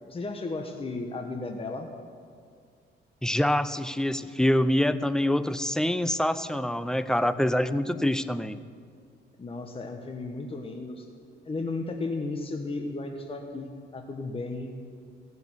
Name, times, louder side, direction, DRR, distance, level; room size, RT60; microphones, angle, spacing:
voice 1, 0.0-1.9 9.4-11.1 11.4-14.7, left 3 dB, 30° left, 3 dB, 1.3 m, -34 dB
voice 2, 3.2-8.6, left 1 dB, 5° left, 13 dB, 0.6 m, -25 dB
16.0 x 6.9 x 9.8 m, 2.1 s
cardioid pair, 90°, 20 cm